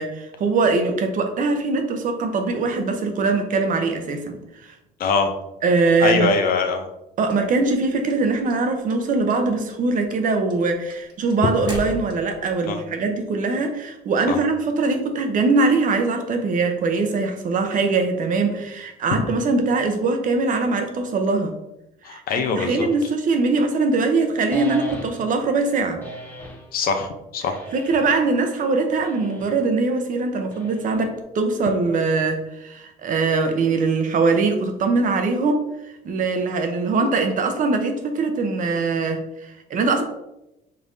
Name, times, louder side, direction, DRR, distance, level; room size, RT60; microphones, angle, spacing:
voice 1, 0.0-4.4 5.6-6.3 7.2-21.5 22.1-22.2 22.5-26.0 27.7-35.6 36.0-40.0, right 3 dB, 50° right, 5 dB, 0.7 m, -22 dB
voice 2, 5.0-5.3 6.0-6.9 12.7-12.8 14.3-14.4 22.0-22.9 26.7-27.6, left 5 dB, 60° left, 6 dB, 0.7 m, -23 dB
sound 1, 7.3-8.6 8.9-9.4 9.7-12.5, left 1 dB, 25° right, 1.2 m, -35 dB
sound 2, 24.5-25.4 26.0-26.7 27.5-28.2 29.0-29.6 30.5-31.2, equal, 10° left, 0.9 m, -37 dB
5.3 x 3.4 x 2.6 m, 0.90 s
cardioid pair, 110°, 17 cm